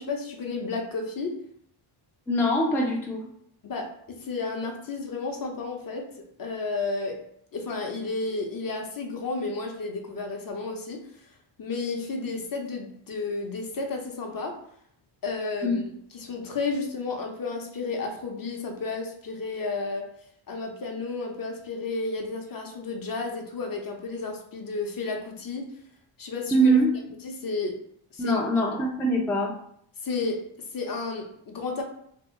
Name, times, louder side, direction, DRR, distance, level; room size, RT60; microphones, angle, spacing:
voice 1, 0.0-1.3 3.6-6.0 6.4-7.2 7.5-11.0 11.6-14.5 15.2-15.8 16.1-20.1 20.5-25.7 26.2-26.7 27.2-27.8 28.1-28.4 30.0-30.4 30.7-31.8, left 3 dB, 45° left, 2 dB, 0.7 m, -32 dB
voice 2, 2.3-3.3 15.6-15.7 26.5-26.9 28.2-29.5, right 1 dB, 5° left, -2 dB, 0.4 m, -23 dB
2.8 x 2.3 x 3.6 m, 0.67 s
cardioid pair, 95°, 50 cm